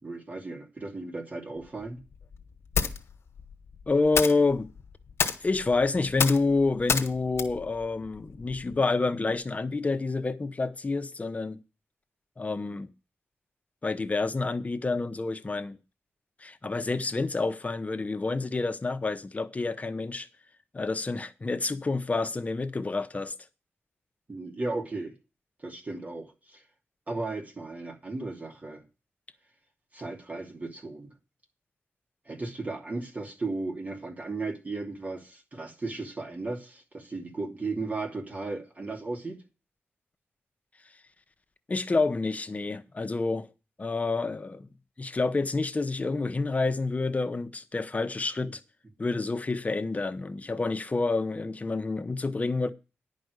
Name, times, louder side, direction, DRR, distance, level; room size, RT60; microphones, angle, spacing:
voice 1, 0.0-2.0 24.3-25.1 25.6-26.6 27.1-28.8 29.9-31.1 32.3-39.4 48.5-48.6, right 3 dB, 35° right, 2.9 m, -35 dB
sound 1, 1.6-8.8, left 6 dB, 65° left, 1.4 m, -32 dB
voice 2, 3.9-4.7 5.4-11.6 12.4-12.9 13.8-15.8 16.4-20.3 20.7-23.3 41.7-43.5 43.8-44.7 45.0-48.6 49.0-52.7, left 3 dB, 30° left, 0.9 m, -28 dB
10.5 x 5.2 x 8.0 m
cardioid pair, 90°, 5 cm